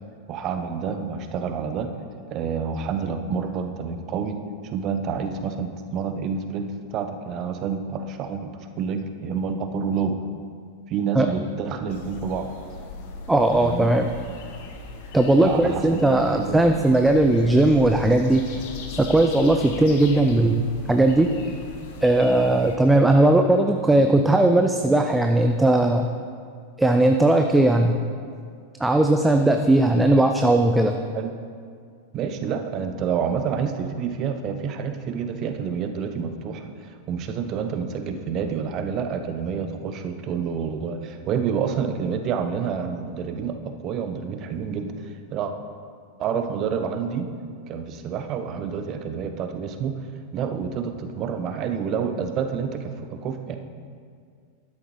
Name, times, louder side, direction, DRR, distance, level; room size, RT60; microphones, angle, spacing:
voice 1, 0.3-1.9 2.3-4.4 4.7-8.5 8.8-10.2 10.9-12.5 13.5-13.9 15.4-16.6 31.1-31.3 32.1-45.5 46.2-47.3 47.7-49.9 50.3-53.6, right 6 dB, 35° right, 7 dB, 0.8 m, -28 dB
sound 1, 11.9-22.8, left 3 dB, 50° left, 1.2 m, -39 dB
voice 2, 13.3-14.1 15.1-18.6 19.0-21.3 22.0-26.1 26.8-28.0 28.8-31.0, right 2 dB, 5° right, 5 dB, 0.5 m, -18 dB
12.5 x 10.5 x 3.2 m, 2.2 s
figure-of-eight pair, 90°, 0 cm